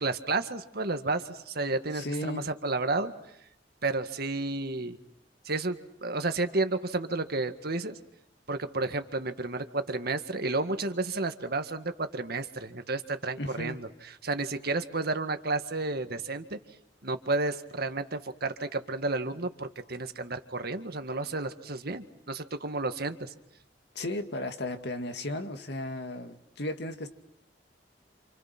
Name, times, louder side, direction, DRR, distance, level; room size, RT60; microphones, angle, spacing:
voice 1, 0.0-3.1 3.8-5.0 5.4-8.0 8.5-13.9 14.2-16.6 17.0-23.3, right 3 dB, 60° right, 1.9 m, -31 dB
voice 2, 1.9-2.5 13.4-13.8 23.9-27.1, left 1 dB, 65° left, 2.4 m, -35 dB
30.0 x 28.0 x 6.1 m
head